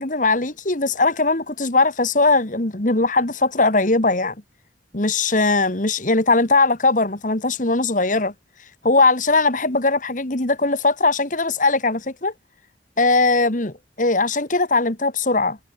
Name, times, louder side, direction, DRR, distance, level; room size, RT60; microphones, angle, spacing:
voice 1, 0.0-4.3 4.9-8.3 8.8-12.3 13.0-15.6, left 3 dB, 50° left, 2.2 m, -20 dB
head